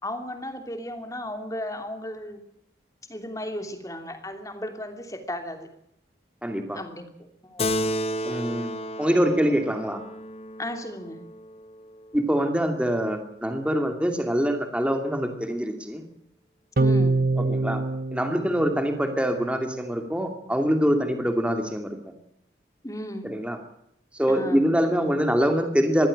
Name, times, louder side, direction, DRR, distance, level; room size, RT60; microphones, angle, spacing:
voice 1, 0.0-2.4 3.1-5.7 6.7-7.8 10.6-11.2 16.8-17.2 22.8-23.3 24.3-24.6, left 1 dB, 20° left, 6 dB, 2.9 m, -35 dB
voice 2, 6.4-6.8 8.2-8.7 9.0-10.0 12.1-16.0 17.4-17.8 18.1-22.0 23.2-23.6 24.1-26.1, equal, 5° right, 5 dB, 2.5 m, -24 dB
Keyboard (musical), 7.6-12.5, equal, 35° left, 1.2 m, -32 dB
sound 1, 16.8-19.4, right 3 dB, 50° right, 0.9 m, -25 dB
22.0 x 15.5 x 8.8 m, 0.76 s
head